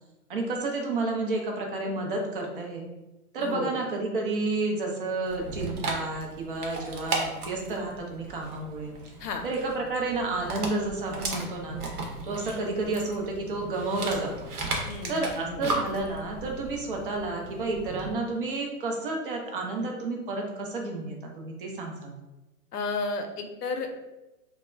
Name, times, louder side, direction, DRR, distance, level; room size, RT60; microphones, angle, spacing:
voice 1, 0.3-2.9 3.3-9.0 9.4-11.8 12.2-14.5 15.1-22.1, right 2 dB, 35° right, 1 dB, 0.5 m, -31 dB
voice 2, 3.4-3.8 9.2-9.4 14.8-15.7 22.7-24.0, left 4 dB, 80° left, 5 dB, 0.6 m, -33 dB
Dog, 5.3-18.1, right 2 dB, 70° right, 0.8 m, -36 dB
2.3 x 2.0 x 3.2 m, 1.0 s
hypercardioid pair, 140°, 46 cm